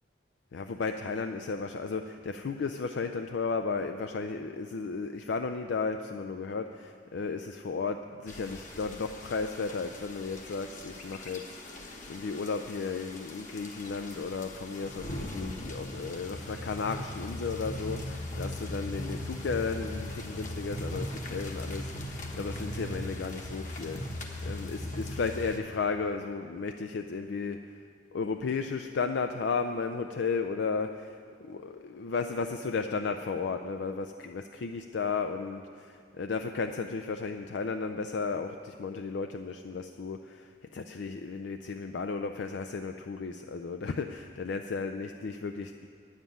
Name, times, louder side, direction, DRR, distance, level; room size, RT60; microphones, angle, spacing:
voice 1, 0.5-27.7 28.1-45.9, left 4 dB, 70° left, 7 dB, 0.4 m, -34 dB
sound 1, 8.3-25.6, left 1 dB, 40° left, 1.2 m, -39 dB
10.0 x 7.4 x 9.2 m, 2.3 s
head